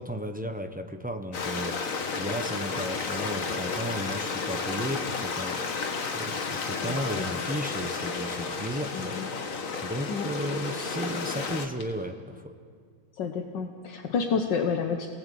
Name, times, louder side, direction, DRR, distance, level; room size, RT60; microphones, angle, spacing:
voice 1, 0.0-9.2 9.8-12.5, equal, 10° right, 6 dB, 0.4 m, -34 dB
Stream, 1.3-11.7, left 4 dB, 50° left, 1.6 m, -32 dB
voice 2, 6.8-7.3 8.9-9.3 10.1-10.3 13.1-15.1, left 5 dB, 75° left, 5 dB, 1.7 m, -30 dB
27.5 x 19.5 x 8.5 m, 2.2 s
omnidirectional pair, 2.0 m